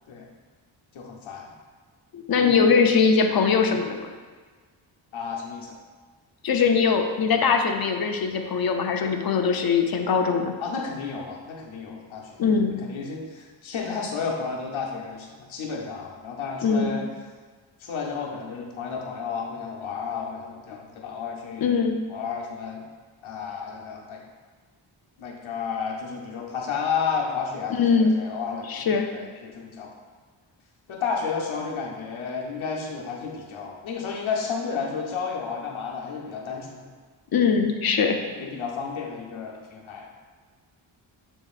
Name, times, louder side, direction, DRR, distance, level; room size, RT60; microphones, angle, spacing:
voice 1, 0.9-1.5 2.3-2.7 5.1-5.8 10.6-12.4 12.7-17.0 17.8-21.8 22.1-22.8 23.2-24.2 25.2-29.9 30.9-36.9 38.1-40.1, left 5 dB, 80° left, -1 dB, 0.9 m, -32 dB
voice 2, 2.1-4.1 6.4-10.5 12.4-12.8 16.6-17.0 21.6-22.0 27.7-28.2 28.7-29.1 37.3-38.2, left 5 dB, 50° left, 5 dB, 0.6 m, -21 dB
7.0 x 2.9 x 2.4 m, 1.5 s
cardioid pair, 75°, 47 cm